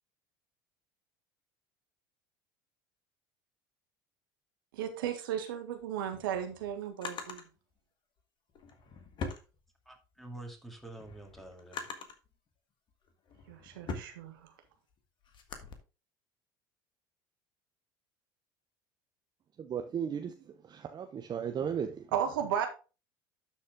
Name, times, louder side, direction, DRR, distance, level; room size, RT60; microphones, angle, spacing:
voice 1, 4.7-7.4 13.5-14.5 22.1-22.7, right 9 dB, 80° right, 1.5 m, -35 dB
Drawer open or close, 5.8-7.5 8.5-10.1 10.6-12.3 12.9-15.7, left 4 dB, 45° left, 1.7 m, -43 dB
voice 2, 9.9-11.9, right 2 dB, ahead, 2.3 m, -47 dB
voice 3, 19.6-22.1, right 8 dB, 40° right, 1.0 m, -36 dB
11.5 x 4.3 x 3.8 m
hypercardioid pair, 75°, 11 cm